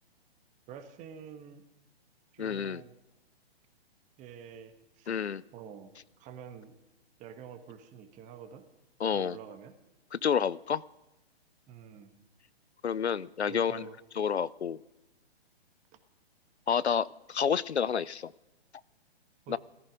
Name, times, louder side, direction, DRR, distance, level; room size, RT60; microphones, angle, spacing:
voice 1, 0.7-1.6 2.3-2.9 4.2-5.9 6.2-6.8 7.2-8.6 9.1-9.7 11.7-12.2 13.5-14.0 19.5-19.6, right 8 dB, 25° right, 9 dB, 1.6 m, -48 dB
voice 2, 2.4-2.8 5.1-5.4 9.0-9.4 10.1-10.8 12.8-13.9 14.2-14.8 16.7-18.3 19.5-19.6, left 7 dB, 90° left, 21 dB, 0.6 m, -29 dB
17.5 x 14.5 x 5.2 m, 0.99 s
figure-of-eight pair, 125°, 32 cm